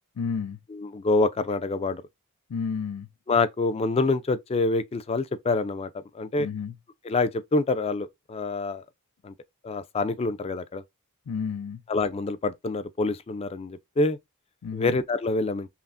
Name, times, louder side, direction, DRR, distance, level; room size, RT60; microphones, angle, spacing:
voice 1, 0.2-0.6 2.5-3.1 6.4-6.8 11.3-11.8 14.6-15.0, left 6 dB, 90° left, 0.4 m, -31 dB
voice 2, 0.9-2.0 3.3-6.5 7.1-8.8 9.2-9.3 9.6-10.8 11.9-14.2 14.7-15.7, left 3 dB, 25° left, 0.3 m, -26 dB
5.6 x 2.0 x 2.5 m
head